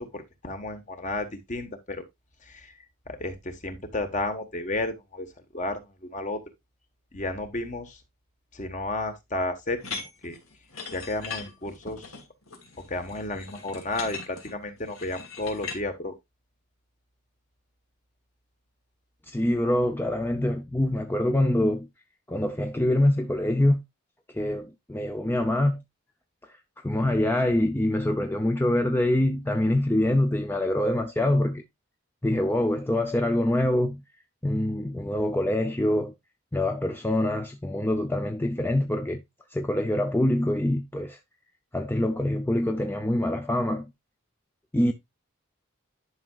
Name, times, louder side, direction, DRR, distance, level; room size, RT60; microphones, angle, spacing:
voice 1, 0.0-2.0 2.4-2.7 3.1-5.3 5.5-6.4 7.1-8.0 8.5-10.4 10.9-12.2 12.9-16.1, left 2 dB, 35° left, 1.3 m, -32 dB
sound 1, 9.8-15.8, left 5 dB, 90° left, 2.5 m, -40 dB
voice 2, 19.3-21.9 22.3-23.8 24.3-25.8 26.5-31.6 32.2-34.0 34.4-36.1 36.5-39.2 39.5-41.2 41.7-43.9 44.7-44.9, left 1 dB, 10° left, 0.5 m, -25 dB
11.0 x 5.7 x 2.4 m
head